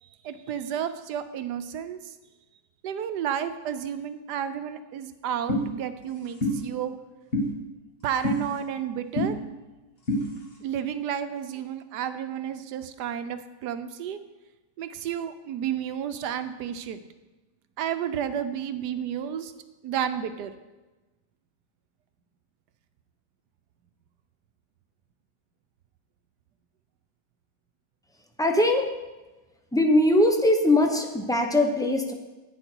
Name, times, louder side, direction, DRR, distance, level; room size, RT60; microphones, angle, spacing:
voice 1, 0.0-2.1 2.8-6.9 8.0-9.4 10.6-14.2 14.8-17.0 17.8-19.5 19.8-20.5, right 9 dB, 80° right, 10 dB, 1.3 m, -31 dB
sound 1, 5.5-5.6 6.4-6.6 7.3-7.5 8.2-8.4 9.2-9.3 10.1-10.2, left 1 dB, 35° left, 1.8 m, -24 dB
voice 2, 28.4-28.9 29.7-32.1, left 1 dB, 5° left, 3 dB, 0.5 m, -21 dB
10.5 x 8.8 x 4.6 m, 1.1 s
omnidirectional pair, 1.7 m